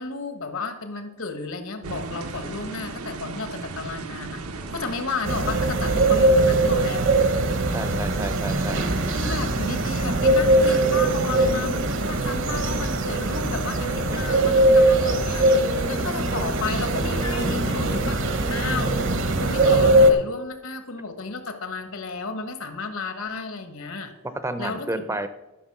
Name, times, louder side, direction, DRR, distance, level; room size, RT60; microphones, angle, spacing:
voice 1, 0.0-4.4 4.7-7.1 9.0-15.5 15.9-19.1 19.4-24.1 24.6-25.2, left 4 dB, 65° left, 9 dB, 1.4 m, -33 dB
sound 1, 1.8-19.5, right 3 dB, 80° right, 1.0 m, -37 dB
sound 2, 5.3-20.1, right 1 dB, 55° right, 1.0 m, -21 dB
voice 2, 7.7-8.8 14.1-14.2 24.4-25.3, right 1 dB, 15° right, 11 dB, 0.6 m, -30 dB
12.5 x 6.2 x 6.0 m, 1.0 s
head